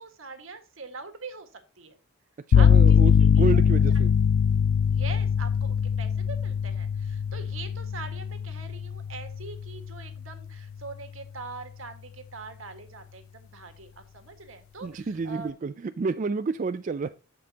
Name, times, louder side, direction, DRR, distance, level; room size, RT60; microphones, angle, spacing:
voice 1, 0.0-2.0 2.5-3.6 4.9-15.5, right 4 dB, 70° right, 7 dB, 1.7 m, -43 dB
sound 1, 2.5-10.2, left 7 dB, 75° left, 0.3 m, -22 dB
voice 2, 2.5-4.1 14.8-17.1, right 4 dB, 40° right, 10 dB, 0.3 m, -30 dB
14.5 x 5.3 x 2.8 m, 0.31 s
head